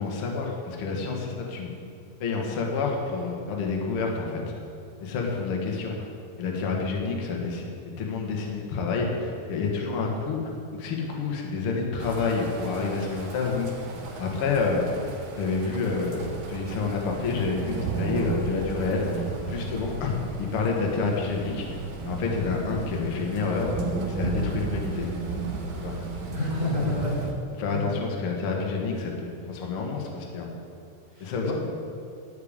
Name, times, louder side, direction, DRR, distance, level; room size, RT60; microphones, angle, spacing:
voice 1, 0.0-1.7 2.2-4.4 5.0-6.0 6.4-13.7 14.2-14.9 15.4-16.2 16.5-21.6 22.0-23.7 24.1-25.1 25.8-25.9 27.6-30.5 31.2-31.5, left 4 dB, 85° left, 0 dB, 1.2 m, -28 dB
Morning Medium Storm, 12.0-27.3, right 4 dB, 65° right, 2.8 m, -34 dB
voice 2, 26.3-27.1 27.6-27.9 31.2-31.5, left 2 dB, 15° right, -8 dB, 2.1 m, -28 dB
12.5 x 5.0 x 8.8 m, 2.6 s
omnidirectional pair, 4.8 m